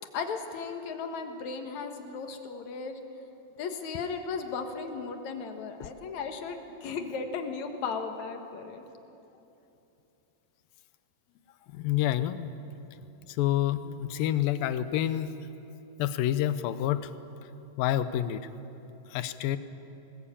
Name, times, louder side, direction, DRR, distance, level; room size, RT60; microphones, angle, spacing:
voice 1, 0.1-3.0 3.5-8.8, left 5 dB, 60° left, 5 dB, 2.5 m, -36 dB
voice 2, 11.7-12.5 13.3-15.3 16.0-17.1 17.4-17.5 17.8-18.5 19.1-19.6, left 12 dB, 80° left, 13 dB, 2.4 m, -28 dB
22.5 x 19.5 x 8.6 m, 2.9 s
omnidirectional pair, 4.3 m